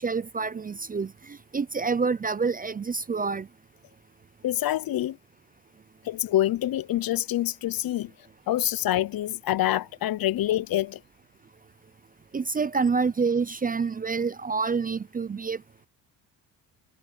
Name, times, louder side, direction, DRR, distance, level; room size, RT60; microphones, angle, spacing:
voice 1, 0.0-3.5 12.3-15.6, right 5 dB, 20° right, 0.5 m, -27 dB
voice 2, 4.4-5.2 6.0-8.1 8.5-11.0, left 13 dB, 55° left, 0.8 m, -26 dB
cardioid pair, 90°, 43 cm